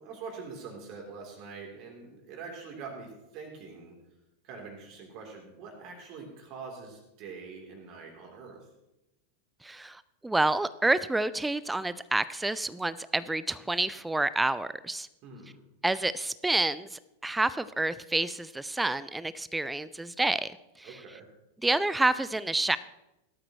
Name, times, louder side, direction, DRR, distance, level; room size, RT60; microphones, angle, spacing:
voice 1, 0.0-4.0 4.4-8.7 15.2-15.6 20.8-21.3, right 4 dB, 40° right, 1 dB, 3.4 m, -44 dB
voice 2, 9.6-15.1 15.8-21.0 21.6-22.8, right 2 dB, 5° right, 17 dB, 0.4 m, -29 dB
17.5 x 12.5 x 3.1 m, 0.93 s
figure-of-eight pair, 90°, 0 cm